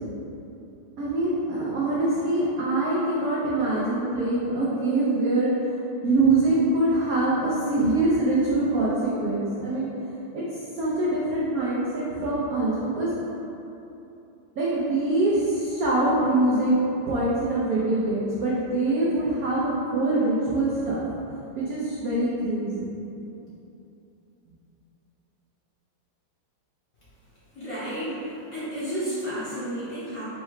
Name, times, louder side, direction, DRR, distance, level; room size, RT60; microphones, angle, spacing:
voice 1, 1.0-5.5 6.0-9.9 10.3-10.4 10.7-13.1 14.6-21.0 21.6-22.9, right 2 dB, 80° right, -7 dB, 0.8 m, -24 dB
voice 2, 27.5-30.3, right 1 dB, 50° left, -11 dB, 1.1 m, -32 dB
4.5 x 2.2 x 4.6 m, 2.9 s
omnidirectional pair, 2.3 m